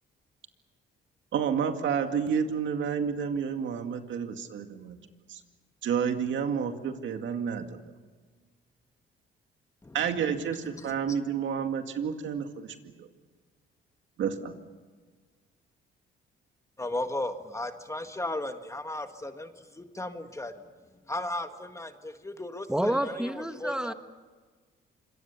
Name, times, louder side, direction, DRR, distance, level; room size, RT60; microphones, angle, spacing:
voice 1, 1.3-5.0 5.3-5.4 5.8-7.8 9.9-13.1 14.2-14.5, right 7 dB, 70° right, 6 dB, 2.2 m, -30 dB
voice 2, 9.8-10.3 10.7-11.2 16.8-20.6 21.1-23.9, left 1 dB, 15° left, 7 dB, 1.7 m, -36 dB
voice 3, 22.7-23.9, right 1 dB, 5° right, 9 dB, 1.5 m, -28 dB
26.5 x 22.5 x 7.0 m, 1.5 s
cardioid pair, 90°, 20 cm